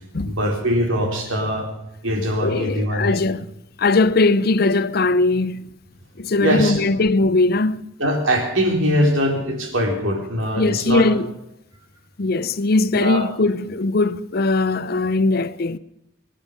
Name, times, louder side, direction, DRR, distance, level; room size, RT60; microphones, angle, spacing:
voice 1, 0.2-1.7 2.0-3.2 6.4-6.8 8.0-11.0 12.9-13.2, equal, 75° right, 3.8 m, -22 dB
voice 2, 2.2-3.5 3.8-5.7 6.2-7.9 10.6-11.3 12.2-15.8, left 3 dB, 50° left, 0.6 m, -20 dB
24.5 x 10.0 x 5.3 m
head